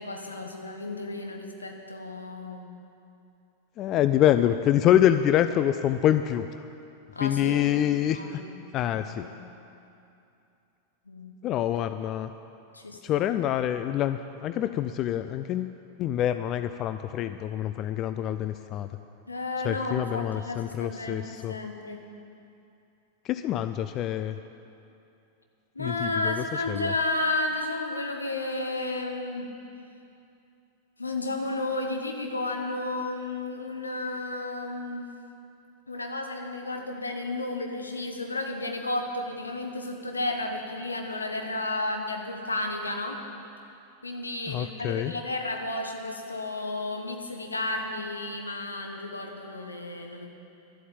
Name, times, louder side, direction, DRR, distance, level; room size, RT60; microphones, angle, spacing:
voice 1, 0.0-2.7 7.1-7.6 8.1-8.5 8.8-9.4 11.1-11.3 12.7-13.3 19.3-22.0 25.7-29.5 31.0-35.1 35.9-43.2 44.0-50.3, left 2 dB, 80° left, 3 dB, 1.3 m, -32 dB
voice 2, 3.8-6.5 7.2-8.4 8.7-9.3 11.4-12.3 13.0-18.9 19.6-21.5 23.3-24.3 25.8-26.9 44.5-45.1, left 11 dB, 35° left, 10 dB, 0.4 m, -26 dB
12.0 x 8.2 x 9.0 m, 2.7 s
figure-of-eight pair, 90°, 0 cm